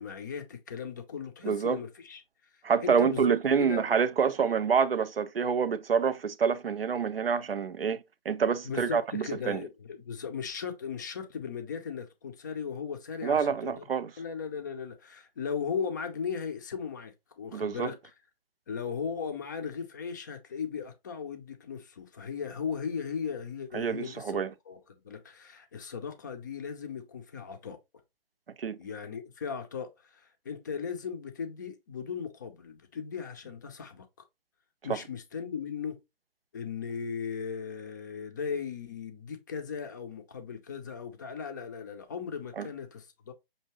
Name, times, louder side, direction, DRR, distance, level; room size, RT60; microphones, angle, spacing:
voice 1, 0.0-2.2 2.8-3.9 8.6-13.9 14.2-18.0 18.7-24.8 25.0-27.8 28.8-34.1 34.8-36.0 36.5-43.3, left 6 dB, 20° left, 0.4 m, -37 dB
voice 2, 1.4-1.8 2.6-9.6 13.2-14.1 17.5-17.9 23.7-24.5 28.6-28.8 34.9-35.0 42.6-42.7, right 6 dB, 80° right, 0.6 m, -27 dB
5.5 x 2.7 x 3.0 m
figure-of-eight pair, 140°, 29 cm